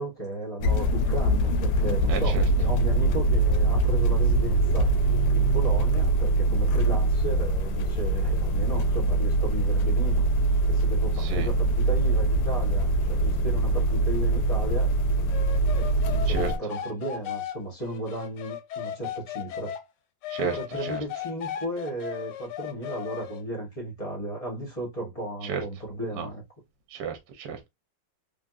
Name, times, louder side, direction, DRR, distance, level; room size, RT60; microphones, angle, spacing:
voice 1, 0.0-4.9 5.3-10.2 10.7-14.9 15.8-19.7 20.4-26.4, right 1 dB, 35° left, 0.6 m, -35 dB
sound 1, 0.6-16.6, right 2 dB, 90° left, 1.4 m, -23 dB
voice 2, 2.1-2.4 11.2-11.5 16.3-16.5 20.3-21.0 25.4-25.6 26.2-26.3 26.9-27.7, right 6 dB, 70° right, 1.2 m, -32 dB
sound 2, 15.3-19.8 20.2-23.4, left 10 dB, 75° left, 1.1 m, -36 dB
3.5 x 2.6 x 2.3 m
omnidirectional pair, 2.2 m